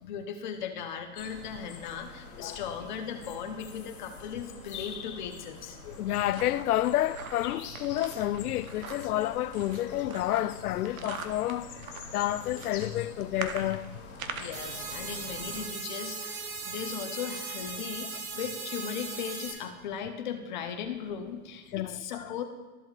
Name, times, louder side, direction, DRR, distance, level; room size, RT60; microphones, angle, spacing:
voice 1, 0.0-5.8 14.3-22.4, left 7 dB, 35° left, 0.7 m, -37 dB
sound 1, 1.1-15.7, left 4 dB, 50° left, 2.1 m, -46 dB
sound 2, 5.8-14.6, right 6 dB, 70° right, 1.0 m, -44 dB
voice 2, 5.9-11.7 12.1-13.8 21.7-22.3, left 14 dB, 85° left, 0.5 m, -29 dB
sound 3, 14.5-19.5, right 4 dB, 90° right, 2.1 m, -38 dB
13.5 x 7.6 x 2.4 m
hypercardioid pair, 160°, 44 cm